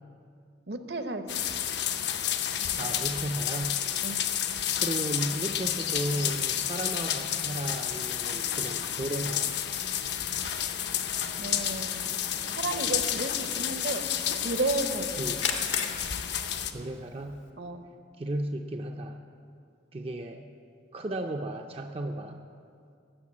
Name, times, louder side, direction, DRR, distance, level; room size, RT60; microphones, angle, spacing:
voice 1, 0.7-1.4 4.0-4.2 10.3-10.8 11.4-12.1 12.5-14.1 14.4-15.2 17.6-17.8, right 2 dB, 60° right, 8 dB, 0.8 m, -33 dB
sound 1, 1.3-16.7, left 9 dB, 65° left, 0.7 m, -30 dB
voice 2, 2.8-3.8 4.8-9.6 15.2-15.4 16.7-17.4 18.2-19.2 19.9-20.5 20.9-22.4, right 1 dB, 30° right, 4 dB, 0.4 m, -34 dB
Camera, 5.5-17.5, left 6 dB, 90° left, 1.5 m, -43 dB
14.5 x 6.7 x 8.6 m, 2.4 s
head